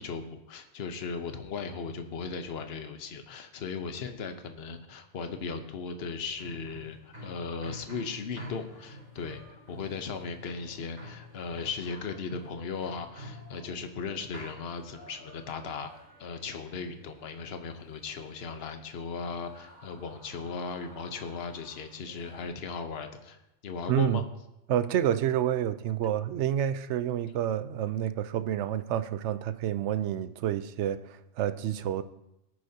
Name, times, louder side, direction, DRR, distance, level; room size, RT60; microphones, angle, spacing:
voice 1, 0.0-15.9 16.2-24.2, left 5 dB, 60° left, 7 dB, 1.2 m, -37 dB
sound 1, 6.3-22.4, left 1 dB, 50° right, 5.8 m, -50 dB
voice 2, 23.9-24.2 24.7-32.0, right 10 dB, 75° right, 12 dB, 0.9 m, -29 dB
19.0 x 9.7 x 2.8 m, 0.88 s
omnidirectional pair, 1.2 m